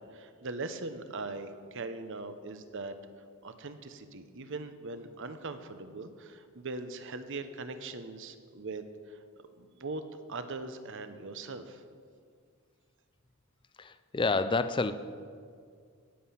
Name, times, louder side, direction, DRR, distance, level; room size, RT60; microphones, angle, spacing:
voice 1, 0.0-3.0 3.4-9.2 9.5-10.0 10.3-11.8, right 3 dB, 55° right, 10 dB, 0.9 m, -40 dB
voice 2, 13.8-14.9, left 3 dB, 20° left, 11 dB, 0.4 m, -28 dB
17.0 x 7.7 x 5.7 m, 2.1 s
head